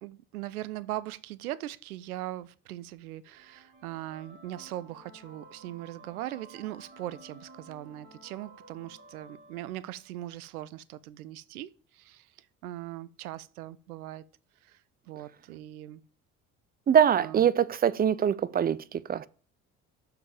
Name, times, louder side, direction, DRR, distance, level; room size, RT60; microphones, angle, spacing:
voice 1, 0.0-14.2 14.6-14.8 15.1-16.0 17.1-17.5, right 14 dB, 85° right, 0.5 m, -40 dB
sound 1, 3.3-10.3, right 2 dB, 60° right, 2.3 m, -53 dB
voice 2, 16.9-19.3, right 8 dB, 25° right, 0.4 m, -23 dB
6.4 x 4.8 x 4.9 m
hypercardioid pair, 55°, 43 cm